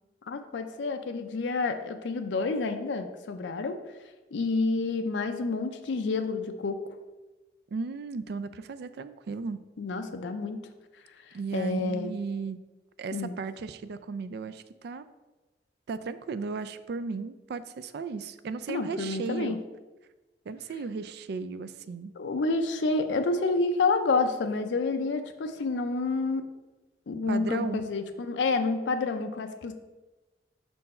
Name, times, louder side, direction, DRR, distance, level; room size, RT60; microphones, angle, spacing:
voice 1, 0.3-3.7 4.3-6.8 9.8-10.6 11.5-12.1 13.1-13.3 18.7-19.6 22.2-26.4 27.1-29.7, left 3 dB, 85° left, 6 dB, 0.5 m, -29 dB
voice 2, 7.7-9.6 11.3-12.6 13.0-15.1 15.9-19.6 20.5-22.1 27.3-27.8, right 4 dB, 65° right, 12 dB, 0.3 m, -35 dB
5.4 x 4.5 x 4.2 m, 1.1 s
head